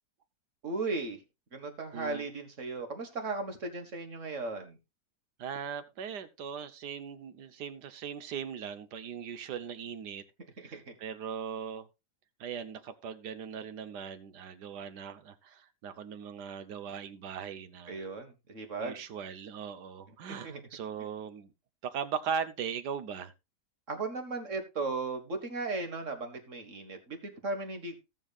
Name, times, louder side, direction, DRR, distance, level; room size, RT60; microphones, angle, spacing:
voice 1, 0.6-1.2 1.5-4.8 10.6-10.9 17.9-19.0 20.3-20.6 23.9-27.9, right 3 dB, 50° right, 1.9 m, -36 dB
voice 2, 1.9-2.2 5.4-10.2 10.6-11.9 12.4-18.0 18.8-21.5 21.8-23.3, right 7 dB, 80° right, 1.5 m, -39 dB
19.0 x 6.4 x 2.4 m
omnidirectional pair, 1.8 m